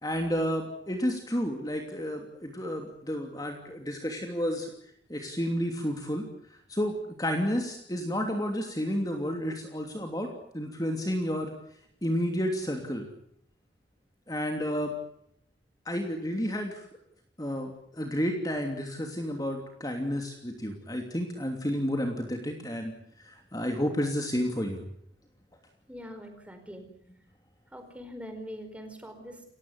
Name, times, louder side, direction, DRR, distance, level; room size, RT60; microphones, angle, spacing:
voice 1, 0.0-4.7 5.1-6.2 6.5-11.5 12.0-13.1 14.3-14.9 15.8-16.9 17.4-22.9 23.2-24.8, equal, 20° left, 3 dB, 2.9 m, -31 dB
voice 2, 25.9-26.9 27.7-29.5, equal, 5° right, 6 dB, 4.7 m, -43 dB
29.0 x 16.0 x 9.7 m, 0.71 s
head